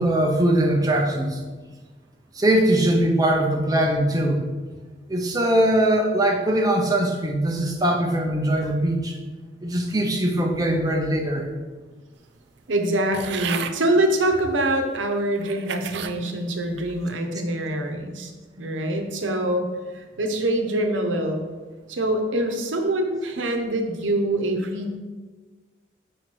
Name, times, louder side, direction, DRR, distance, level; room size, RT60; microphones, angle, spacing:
voice 1, 0.0-1.4 2.4-4.4 5.1-9.2 9.6-11.5, right 1 dB, 20° right, 1 dB, 0.6 m, -21 dB
voice 2, 12.7-18.3 18.6-19.7 19.9-21.4 21.9-25.0, right 1 dB, 90° right, 4 dB, 0.8 m, -24 dB
sound 1, 13.1-13.8 14.6-14.7 15.3-16.2 16.7-17.1, right 8 dB, 65° right, 0.4 m, -32 dB
5.1 x 4.5 x 4.5 m, 1.3 s
head